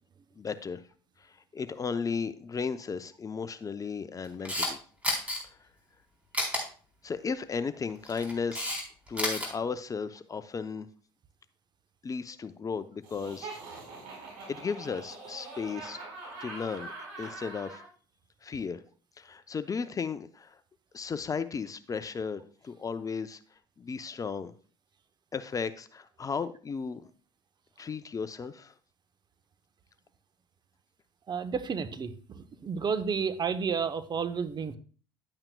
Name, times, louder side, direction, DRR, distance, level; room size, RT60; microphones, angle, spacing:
voice 1, 0.4-0.8 1.2-4.8 7.0-8.8 9.1-10.9 12.0-13.6 14.5-16.0 16.4-16.9 17.2-17.8 18.4-18.8 19.2-20.6 20.9-23.4 23.8-24.5 25.3-27.0 27.8-28.7, left 5 dB, 30° left, 12 dB, 0.6 m, -35 dB
Camera, 4.2-4.7 5.0-5.4 6.3-6.6 7.9-8.8 9.1-9.5, left 1 dB, 10° right, 3.7 m, -30 dB
Laughter, 13.0-17.9, right 3 dB, 65° right, 4.5 m, -43 dB
voice 2, 31.3-34.8, right 6 dB, 35° right, 11 dB, 0.8 m, -31 dB
10.5 x 8.7 x 2.3 m, 0.40 s
hypercardioid pair, 65°, 12 cm